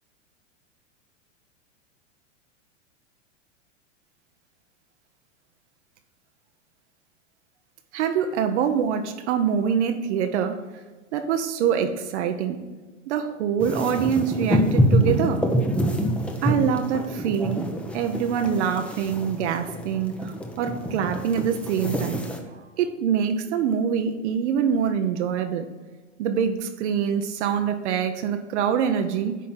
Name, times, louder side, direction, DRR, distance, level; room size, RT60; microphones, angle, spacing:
voice 1, 7.9-10.6 11.1-12.6 13.1-15.5 16.4-17.7 17.9-25.7 26.2-29.4, right 7 dB, 65° right, 7 dB, 1.0 m, -25 dB
sound 1, 13.6-22.4, equal, 5° left, 0.8 m, -26 dB
10.0 x 4.1 x 5.9 m, 1.3 s
supercardioid pair, 130°, 36 cm